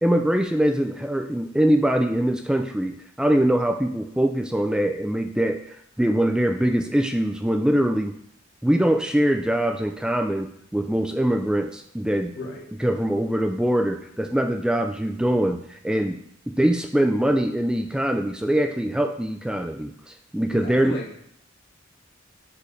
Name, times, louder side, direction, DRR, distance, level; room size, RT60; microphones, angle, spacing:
voice 1, 0.0-8.1 8.6-12.3 12.8-16.2 16.5-20.9, right 1 dB, 5° right, 5 dB, 0.3 m, -23 dB
voice 2, 12.3-12.7 20.5-21.2, left 1 dB, 60° left, -2 dB, 1.9 m, -35 dB
6.8 x 5.0 x 4.9 m, 0.70 s
head